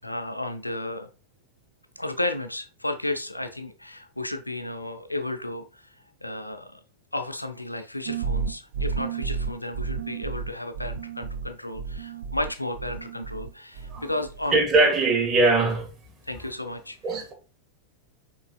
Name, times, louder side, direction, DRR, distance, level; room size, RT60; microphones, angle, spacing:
voice 1, 0.0-1.1 2.0-5.9 6.2-6.8 7.1-14.6 16.2-17.0, left 1 dB, 85° left, 0.5 m, -33 dB
sound 1, 8.1-13.5 13.8-14.5, right 6 dB, 60° right, 0.5 m, -32 dB
voice 2, 14.5-15.9 17.0-17.3, right 3 dB, 20° right, 1.6 m, -21 dB
6.6 x 3.2 x 2.3 m
figure-of-eight pair, 90°, 0 cm